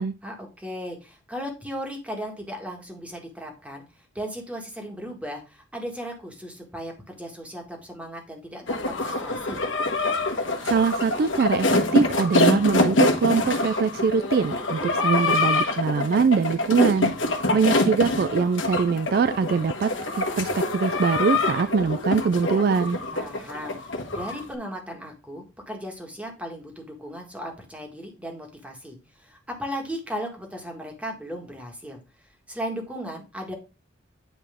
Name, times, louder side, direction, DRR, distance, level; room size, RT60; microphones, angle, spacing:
voice 1, 0.2-3.8 4.2-9.6 14.8-14.9 23.1-32.0 32.5-33.5, equal, 5° right, 1.8 m, -36 dB
sound 1, 8.7-24.4, left 2 dB, 75° left, 1.3 m, -25 dB
voice 2, 10.6-17.1 17.5-19.9 20.2-23.0, right 5 dB, 50° right, 0.3 m, -23 dB
9.0 x 4.7 x 3.6 m
head